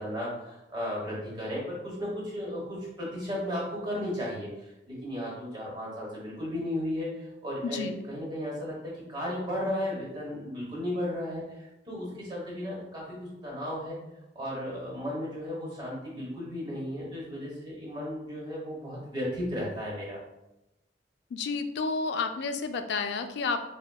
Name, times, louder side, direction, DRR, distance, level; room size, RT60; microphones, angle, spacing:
voice 1, 0.0-14.0 14.3-20.2, equal, 25° right, -5 dB, 1.0 m, -35 dB
voice 2, 7.6-8.0 21.3-23.7, left 4 dB, 65° left, 7 dB, 0.3 m, -31 dB
4.3 x 2.1 x 2.2 m, 0.92 s
head